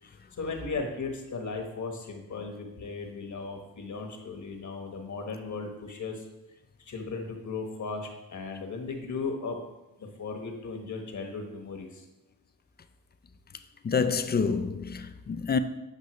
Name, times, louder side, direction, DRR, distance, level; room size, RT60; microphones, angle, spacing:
voice 1, 0.0-6.3 6.8-9.6 10.0-12.1, left 4 dB, 55° left, 1.3 m, -36 dB
voice 2, 13.8-15.6, left 5 dB, 30° left, 0.4 m, -27 dB
8.0 x 5.3 x 3.1 m
cardioid pair, 90°, 35 cm